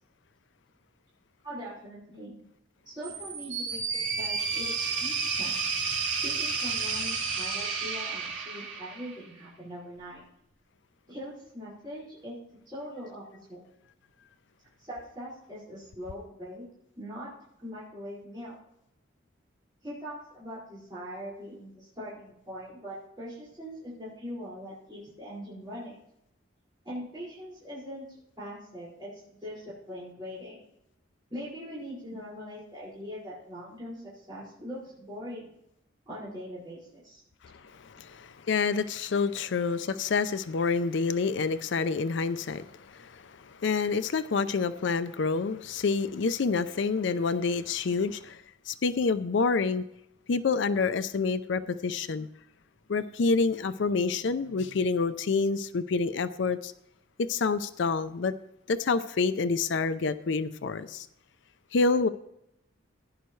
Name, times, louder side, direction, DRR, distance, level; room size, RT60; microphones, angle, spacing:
voice 1, 1.4-2.3 2.8-5.8 6.2-10.2 11.1-12.3 12.6-13.6 14.8-16.7 16.9-17.3 17.6-18.5 19.8-26.0 26.8-30.6 31.3-35.5 36.0-37.2, equal, 20° right, -10 dB, 5.1 m, -41 dB
sound 1, 3.0-9.3, right 5 dB, 80° right, 2.7 m, -31 dB
voice 2, 37.4-49.8 50.3-52.3 52.9-56.7 57.2-58.3 58.7-61.1 61.7-62.1, left 4 dB, 65° left, 13 dB, 0.4 m, -28 dB
16.0 x 10.5 x 3.2 m, 0.79 s
head